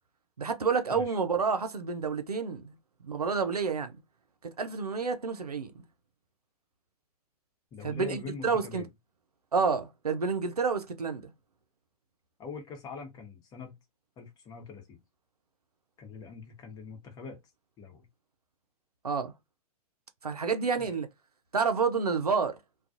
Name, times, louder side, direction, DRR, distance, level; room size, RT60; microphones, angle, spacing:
voice 1, 0.4-2.7 3.0-3.9 4.6-5.8 7.8-8.8 9.5-11.3 19.0-19.3 20.2-21.1 21.5-22.6, right 5 dB, 85° right, 0.5 m, -29 dB
voice 2, 7.7-8.9 12.4-13.8 14.2-15.0 16.0-17.4 17.8-18.1 20.8-20.9, left 5 dB, 20° left, 1.0 m, -43 dB
2.4 x 2.3 x 2.5 m
figure-of-eight pair, 110°, 19 cm